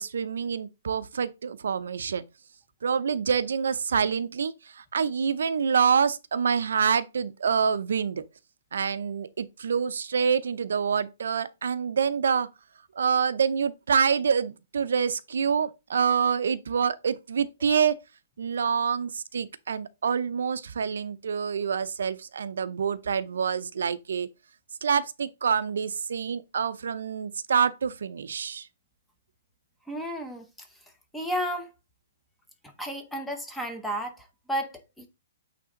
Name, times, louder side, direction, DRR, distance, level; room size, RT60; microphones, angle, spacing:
voice 1, 0.0-2.2 2.8-8.2 8.7-12.5 13.0-17.9 18.4-24.3 24.8-28.7, right 6 dB, 70° right, 0.6 m, -26 dB
voice 2, 29.9-30.5 31.1-31.7 32.8-35.1, equal, ahead, 0.7 m, -32 dB
8.5 x 3.4 x 3.8 m
hypercardioid pair, 175°, 0 cm